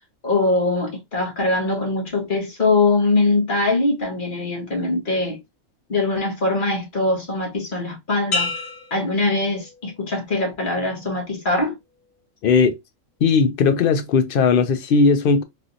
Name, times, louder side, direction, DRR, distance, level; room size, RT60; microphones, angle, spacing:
voice 1, 0.2-5.4 5.9-8.5 8.9-11.7, left 2 dB, 40° left, 1.2 m, -22 dB
sound 1, 8.3-10.1 10.6-11.0, left 3 dB, 80° left, 1.3 m, -30 dB
voice 2, 12.4-12.8 13.2-15.4, left 5 dB, 60° left, 0.6 m, -17 dB
3.2 x 2.8 x 2.5 m
omnidirectional pair, 1.4 m